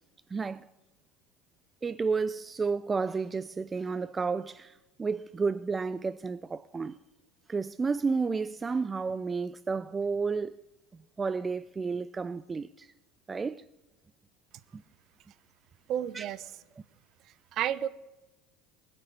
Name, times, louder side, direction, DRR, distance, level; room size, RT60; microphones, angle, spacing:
voice 1, 0.3-0.7 1.8-7.0 7.5-10.5 10.9-12.9 13.3-13.6 14.7-14.8 16.1-16.3, right 4 dB, 25° right, 0.5 m, -31 dB
voice 2, 15.9-16.5 17.5-17.9, right 10 dB, 50° right, 0.9 m, -31 dB
20.5 x 6.8 x 9.6 m
hypercardioid pair, 80°, 0 cm